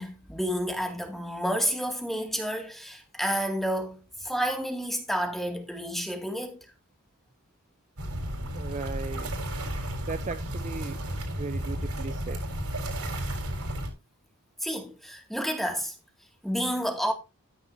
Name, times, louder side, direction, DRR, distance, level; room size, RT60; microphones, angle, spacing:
voice 1, 0.0-6.6 14.6-15.9 16.4-17.1, equal, ahead, 2.3 m, -30 dB
sound 1, 8.0-13.9, right 1 dB, 85° right, 4.3 m, -33 dB
voice 2, 8.5-9.3 10.0-11.0 11.4-12.4, right 4 dB, 35° right, 0.5 m, -37 dB
13.0 x 9.8 x 2.7 m
head